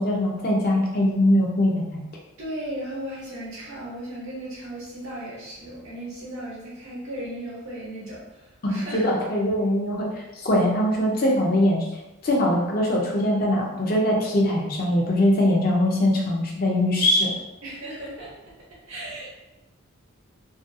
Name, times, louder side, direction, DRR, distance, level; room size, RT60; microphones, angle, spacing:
voice 1, 0.0-2.0 8.6-11.9 12.2-17.3, left 1 dB, 45° left, -1 dB, 0.5 m, -22 dB
voice 2, 2.4-9.1 17.6-18.5 18.8-19.3, right 1 dB, 75° right, -7 dB, 0.8 m, -36 dB
2.5 x 2.3 x 2.5 m, 1.0 s
head